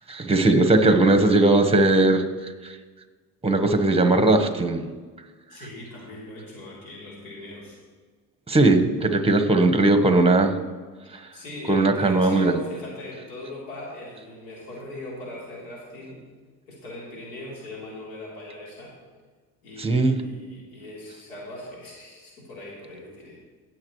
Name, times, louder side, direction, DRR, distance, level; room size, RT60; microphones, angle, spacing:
voice 1, 0.1-2.7 3.4-4.9 8.5-10.6 11.7-12.5 19.8-20.2, right 2 dB, 15° right, 7 dB, 1.4 m, -19 dB
voice 2, 5.5-7.8 11.3-16.2 16.7-19.0 19.6-23.4, left 1 dB, 85° left, -5 dB, 3.7 m, -39 dB
18.0 x 7.2 x 3.2 m, 1.5 s
hypercardioid pair, 65°, 41 cm